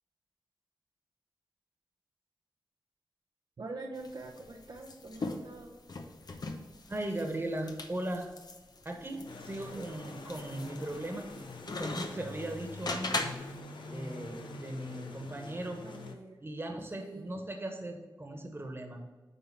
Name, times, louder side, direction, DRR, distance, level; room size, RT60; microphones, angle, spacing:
voice 1, 3.6-5.8 15.8-16.4 17.0-17.3, right 2 dB, 65° right, -1 dB, 0.9 m, -44 dB
sound 1, 4.0-13.6, left 3 dB, 55° left, 0.9 m, -40 dB
voice 2, 6.9-8.3 8.8-11.3 11.8-13.3 13.9-15.8 16.4-19.1, right 1 dB, 30° right, 3 dB, 1.4 m, -38 dB
sound 2, 9.2-16.1, left 3 dB, 85° left, 0.8 m, -45 dB
9.3 x 3.6 x 5.7 m, 1.3 s
cardioid pair, 60°, 8 cm